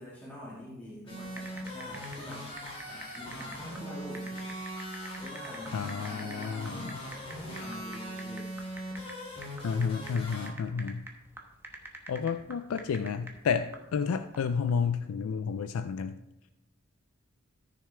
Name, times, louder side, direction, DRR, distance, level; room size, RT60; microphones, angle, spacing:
voice 1, 0.0-2.5 2.8-4.5 5.2-8.5, left 1 dB, 10° left, -8 dB, 1.7 m, -45 dB
sound 1, 1.1-10.5, equal, 25° left, 2.7 m, -40 dB
sound 2, 1.3-14.7, right 2 dB, 10° right, 1.0 m, -47 dB
voice 2, 5.7-6.9 9.6-11.1 12.1-16.2, left 6 dB, 90° left, 11 dB, 0.4 m, -31 dB
14.0 x 6.3 x 3.4 m, 0.96 s
head